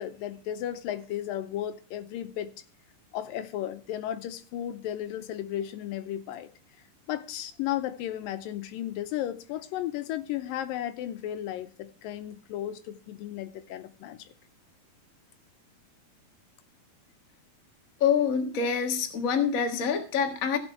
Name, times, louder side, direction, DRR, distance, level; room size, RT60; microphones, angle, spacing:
voice 1, 0.0-2.5 3.1-6.5 7.1-14.3, left 12 dB, 90° left, 2.5 m, -34 dB
voice 2, 18.0-20.6, left 7 dB, 65° left, 0.8 m, -26 dB
15.0 x 5.5 x 5.9 m
omnidirectional pair, 4.0 m